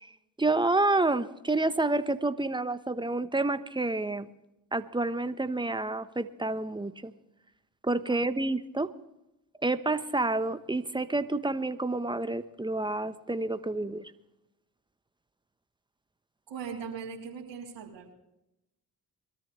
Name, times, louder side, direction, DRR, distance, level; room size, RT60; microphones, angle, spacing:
voice 1, 0.4-4.3 4.7-7.1 7.8-8.9 9.6-14.1, right 2 dB, 10° right, 12 dB, 1.1 m, -29 dB
voice 2, 16.5-18.1, right 6 dB, 70° right, -3 dB, 3.3 m, -40 dB
23.0 x 13.5 x 3.3 m, 0.87 s
hypercardioid pair, 50°, 46 cm